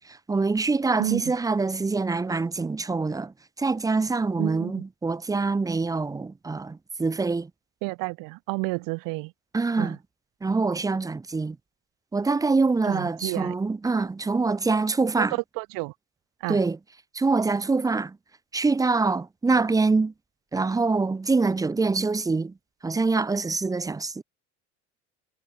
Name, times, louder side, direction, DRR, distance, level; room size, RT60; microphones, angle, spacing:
voice 1, 0.3-3.3 3.6-7.5 9.5-10.0 10.4-11.6 12.1-15.4 16.5-16.8 17.1-18.2 18.5-20.1 20.5-22.5 22.8-24.2, right 3 dB, 10° right, 0.4 m, -25 dB
voice 2, 4.4-4.8 7.8-9.3 9.8-10.0 12.9-13.5 15.2-15.9 16.4-16.6, right 28 dB, 65° right, 0.5 m, -30 dB
supercardioid pair, 75°, 36 cm